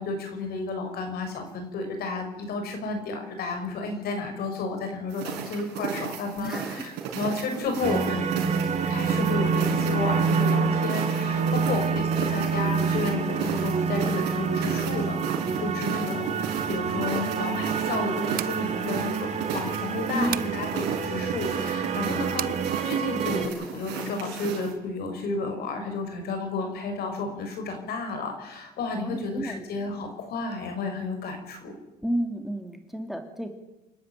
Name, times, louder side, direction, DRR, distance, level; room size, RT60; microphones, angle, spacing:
voice 1, 0.0-8.5 8.8-15.2 15.6-22.5 22.8-31.7, left 3 dB, 65° left, 5 dB, 6.0 m, -32 dB
sound 1, 5.1-24.7, right 7 dB, 85° right, 5.3 m, -35 dB
voice 2, 6.3-6.7 11.6-11.7 20.0-20.7 29.0-29.6 32.0-33.5, right 1 dB, ahead, 5 dB, 2.5 m, -32 dB
sound 2, 7.8-23.5, right 5 dB, 40° right, 2.2 m, -27 dB
sound 3, 18.3-18.6 20.3-20.6 22.4-22.6, right 12 dB, 60° right, 0.8 m, -33 dB
27.5 x 12.5 x 9.1 m, 0.98 s
cardioid pair, 110°, 17 cm